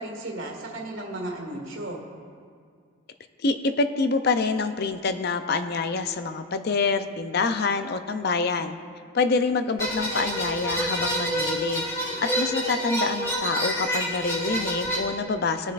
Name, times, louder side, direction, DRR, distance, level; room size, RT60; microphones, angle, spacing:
voice 1, 0.0-2.0, right 1 dB, 70° right, 0 dB, 1.9 m, -34 dB
voice 2, 3.4-8.8 9.1-11.8 12.2-15.7, left 4 dB, 50° left, 9 dB, 0.5 m, -26 dB
sound 1, 9.8-15.0, equal, 15° left, 2.8 m, -28 dB
21.0 x 7.2 x 2.5 m, 2.1 s
head